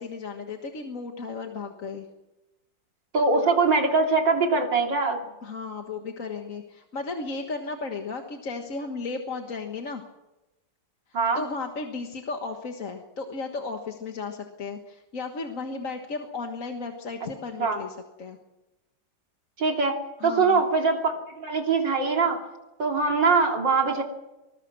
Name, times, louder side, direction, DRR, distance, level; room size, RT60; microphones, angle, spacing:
voice 1, 0.0-2.1 5.4-10.0 11.4-18.4 20.2-20.6, left 4 dB, 45° left, 3 dB, 1.9 m, -34 dB
voice 2, 3.1-5.2 11.1-11.4 17.6-17.8 19.6-19.9 20.2-22.4 22.8-24.0, right 4 dB, 75° right, 2 dB, 3.7 m, -22 dB
25.0 x 21.0 x 6.2 m, 1.0 s
omnidirectional pair, 2.0 m